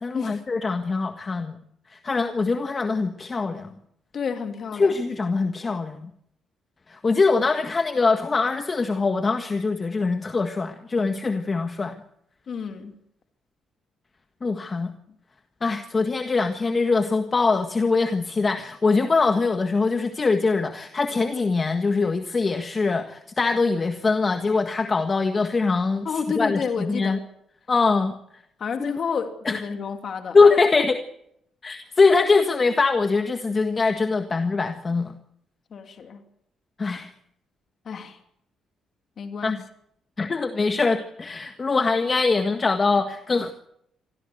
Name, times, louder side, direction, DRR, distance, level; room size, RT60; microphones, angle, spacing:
voice 1, 0.0-1.5 1.9-3.7 4.8-6.1 6.9-11.9 14.4-14.9 15.6-26.1 26.4-27.2 27.7-28.1 28.8-28.9 29.5-29.6 30.3-31.0 31.6-35.1 36.8-37.1 39.4-39.6 40.2-43.5, left 4 dB, 30° left, 1.6 m, -22 dB
voice 2, 4.1-5.0 12.5-12.9 26.0-27.2 28.6-30.4 35.7-36.2 37.8-38.2 39.2-39.6, left 6 dB, 55° left, 2.9 m, -30 dB
25.0 x 16.0 x 7.9 m
cardioid pair, 90°, 0 cm